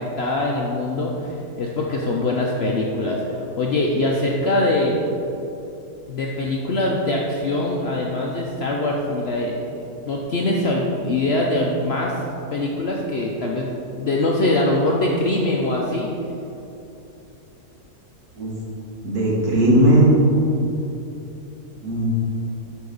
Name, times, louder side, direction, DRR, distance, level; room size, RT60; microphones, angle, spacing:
voice 1, 0.0-5.0 6.1-9.7 10.0-12.2 12.5-16.1, left 2 dB, 60° left, -2 dB, 0.7 m, -23 dB
voice 2, 19.0-20.2 21.8-22.1, right 1 dB, 70° right, -5 dB, 2.0 m, -17 dB
8.2 x 5.2 x 3.9 m, 2.9 s
omnidirectional pair, 1.6 m